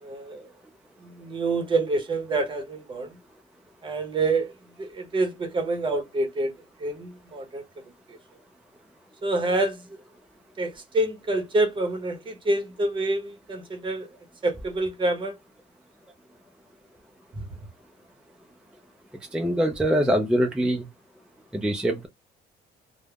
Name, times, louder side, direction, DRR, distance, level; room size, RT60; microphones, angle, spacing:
voice 1, 0.0-0.5 1.0-3.2 3.8-4.5 4.8-6.5 6.8-8.2 9.2-9.9 10.6-14.1 14.4-15.3, right 2 dB, 30° right, 0.8 m, -27 dB
voice 2, 19.2-20.9 21.5-22.1, equal, 5° right, 0.4 m, -24 dB
3.3 x 2.1 x 2.2 m
cardioid pair, 110°, 17 cm